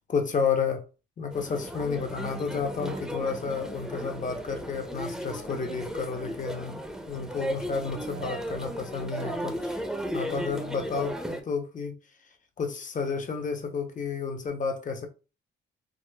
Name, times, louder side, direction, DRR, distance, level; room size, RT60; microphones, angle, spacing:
voice 1, 0.1-0.9 1.2-6.8 7.1-9.8 10.1-11.9 12.6-15.1, left 5 dB, 40° left, 0.7 m, -31 dB
sound 1, 1.3-11.4, equal, 5° right, 0.6 m, -35 dB
sound 2, 2.5-3.6 4.8-6.5 7.8-8.8, right 4 dB, 50° right, 0.6 m, -48 dB
4.8 x 2.0 x 2.2 m
cardioid pair, 90°, 20 cm